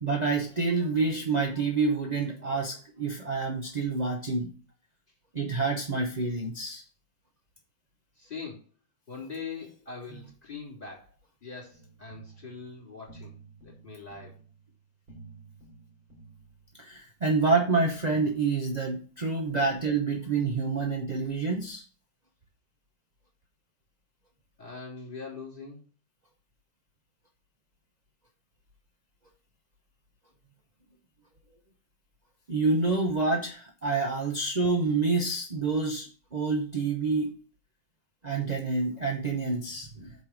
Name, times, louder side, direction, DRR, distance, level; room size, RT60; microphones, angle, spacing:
voice 1, 0.0-4.5 5.3-6.8 16.8-21.8 32.5-37.3 38.2-40.1, right 4 dB, 45° right, 1 dB, 0.5 m, -28 dB
voice 2, 8.2-8.6 9.1-11.1 11.4-13.3 13.6-14.4 24.6-25.8, left 5 dB, 25° left, -3 dB, 3.6 m, -42 dB
sound 1, 11.7-17.0, right 4 dB, 75° right, 3.9 m, -52 dB
6.5 x 5.1 x 6.0 m, 0.38 s
omnidirectional pair, 2.2 m